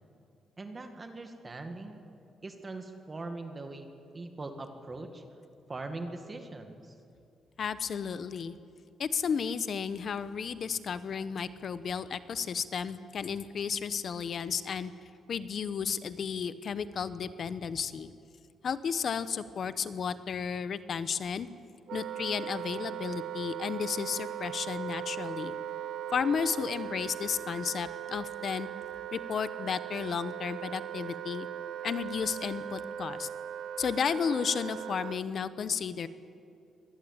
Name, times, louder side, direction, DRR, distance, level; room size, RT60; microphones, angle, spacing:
voice 1, 0.6-2.0 2.4-3.9 4.1-5.2 5.7-7.0, right 2 dB, 25° right, 6 dB, 2.0 m, -41 dB
voice 2, 7.6-8.6 9.0-14.9 15.3-18.1 18.6-21.5 21.9-25.6 26.1-28.7 29.1-31.5 31.8-33.3 33.8-36.1, left 6 dB, 50° left, 14 dB, 1.1 m, -33 dB
Wind instrument woodwind instrument, 21.9-35.2, right 10 dB, 75° right, 0.7 m, -39 dB
24.5 x 19.0 x 8.8 m, 2.5 s
cardioid pair, 120°, 0 cm